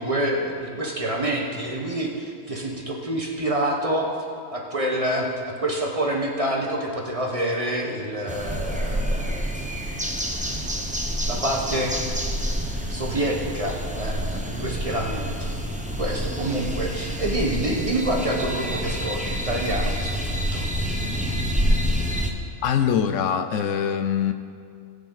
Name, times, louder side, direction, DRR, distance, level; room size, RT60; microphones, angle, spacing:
voice 1, 0.0-4.1 4.5-9.4 11.3-11.9 12.9-15.6 16.0-20.7, right 1 dB, 30° right, -1 dB, 1.3 m, -27 dB
sound 1, 8.3-22.3, equal, 5° right, 0.7 m, -27 dB
voice 2, 22.6-24.3, left 8 dB, 75° left, 9 dB, 1.0 m, -23 dB
19.0 x 7.0 x 4.0 m, 2.3 s
omnidirectional pair, 1.3 m